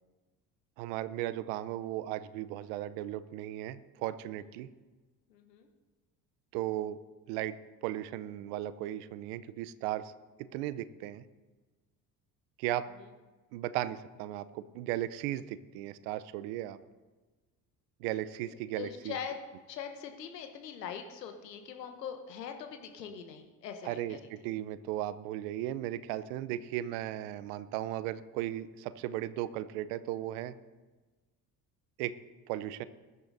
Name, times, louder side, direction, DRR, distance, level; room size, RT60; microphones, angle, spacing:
voice 1, 0.8-4.7 6.5-7.0 7.3-7.6 7.8-10.1 10.4-11.2 12.6-12.9 13.5-16.8 18.0-19.2 23.8-30.5 32.0-32.2 32.5-32.8, right 13 dB, 75° right, 15 dB, 0.8 m, -36 dB
voice 2, 5.3-5.7 18.8-19.4 19.7-24.2, left 7 dB, 90° left, 5 dB, 1.2 m, -42 dB
21.0 x 11.0 x 2.7 m, 1.3 s
hypercardioid pair, 55°, 48 cm